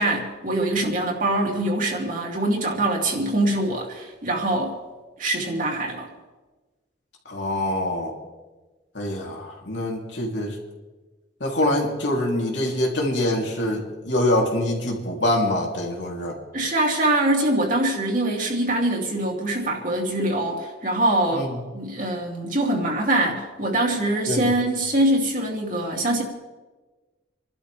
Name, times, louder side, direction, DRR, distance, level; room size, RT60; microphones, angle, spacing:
voice 1, 0.0-4.7 5.2-6.1 16.5-26.2, right 1 dB, 45° right, 0 dB, 2.8 m, -23 dB
voice 2, 7.2-8.1 8.9-10.6 11.4-16.4 21.3-21.6 24.3-24.5, left 1 dB, 75° left, -1 dB, 3.3 m, -25 dB
29.0 x 12.5 x 3.5 m, 1.2 s
head